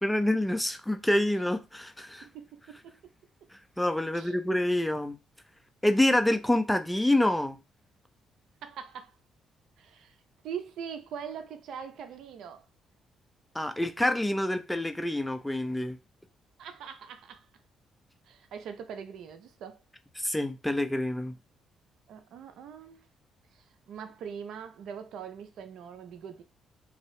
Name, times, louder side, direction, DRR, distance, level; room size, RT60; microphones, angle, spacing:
voice 1, 0.0-2.3 3.8-5.2 5.8-7.6 13.5-16.0 20.2-21.4, left 1 dB, 5° left, 0.4 m, -27 dB
voice 2, 2.2-2.9 4.1-4.3 8.6-9.2 9.8-10.1 10.4-12.7 16.6-17.5 18.3-19.8 22.1-23.0 23.5-26.4, right 7 dB, 80° right, 0.5 m, -42 dB
2.8 x 2.6 x 3.1 m
cardioid pair, 90°, 0 cm